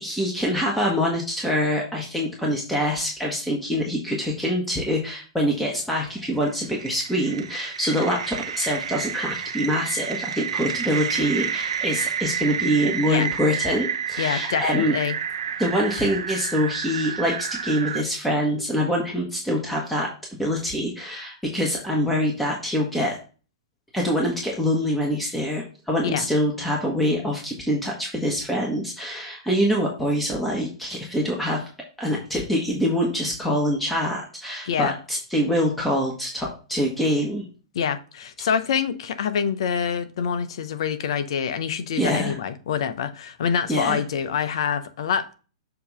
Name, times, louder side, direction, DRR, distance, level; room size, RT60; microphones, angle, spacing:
voice 1, 0.0-14.9 15.6-20.1 20.4-23.2 23.9-31.7 32.0-37.5 41.9-42.4 43.7-44.0, equal, 5° left, 1.3 m, -25 dB
sound 1, 6.1-18.0, right 8 dB, 70° right, 0.8 m, -30 dB
voice 2, 14.2-15.2 26.0-26.3 34.6-34.9 37.7-45.3, left 7 dB, 65° left, 0.7 m, -26 dB
6.8 x 2.9 x 5.3 m
hypercardioid pair, 115°, 3 cm